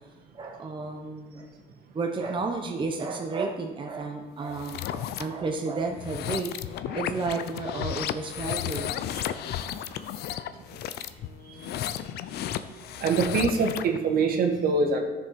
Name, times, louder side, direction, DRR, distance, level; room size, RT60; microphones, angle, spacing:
voice 1, 0.3-1.5 1.9-8.9, right 3 dB, 30° right, 2 dB, 1.1 m, -32 dB
sound 1, 4.5-5.2 5.9-14.0, left 11 dB, 70° left, 0.6 m, -33 dB
voice 2, 13.0-15.0, right 4 dB, 65° right, 2 dB, 2.0 m, -24 dB
12.5 x 7.1 x 5.9 m, 1.2 s
cardioid pair, 110°, 17 cm